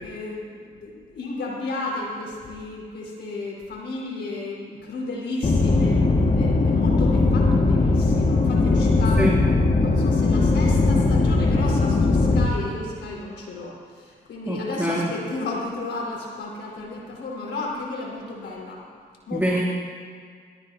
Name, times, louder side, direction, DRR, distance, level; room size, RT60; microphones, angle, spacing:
voice 1, 0.0-9.3 9.8-18.8 19.3-19.6, left 2 dB, 70° left, -3 dB, 4.6 m, -33 dB
sound 1, 5.4-12.5, left 3 dB, 40° left, 1.9 m, -19 dB
voice 2, 14.5-15.1 19.3-19.6, right 1 dB, 10° right, -5 dB, 2.6 m, -24 dB
22.0 x 14.5 x 2.8 m, 2.1 s
supercardioid pair, 45°, 19 cm